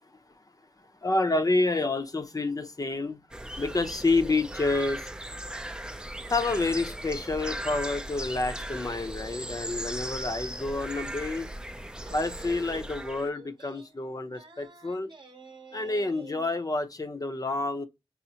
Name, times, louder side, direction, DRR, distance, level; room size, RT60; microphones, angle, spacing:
voice 1, 1.0-3.2 3.5-5.1 6.3-11.5 12.1-15.1 15.7-17.9, left 2 dB, 35° left, 0.6 m, -28 dB
sound 1, 3.3-13.3, right 1 dB, 5° right, 0.4 m, -37 dB
sound 2, 12.0-16.5, right 3 dB, 45° right, 0.8 m, -50 dB
5.6 x 2.0 x 2.7 m
cardioid pair, 45°, 11 cm